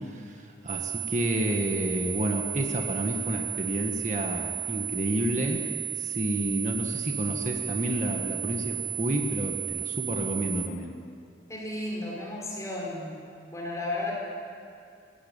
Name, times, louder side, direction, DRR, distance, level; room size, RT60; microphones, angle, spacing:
voice 1, 0.6-5.6 6.0-10.9, equal, 40° right, 2 dB, 1.6 m, -30 dB
sound 1, 0.7-10.7, right 11 dB, 70° right, 1.7 m, -33 dB
voice 2, 11.5-13.1 13.5-14.1, left 2 dB, 15° left, -3 dB, 4.6 m, -33 dB
21.0 x 16.0 x 8.9 m, 2.4 s
head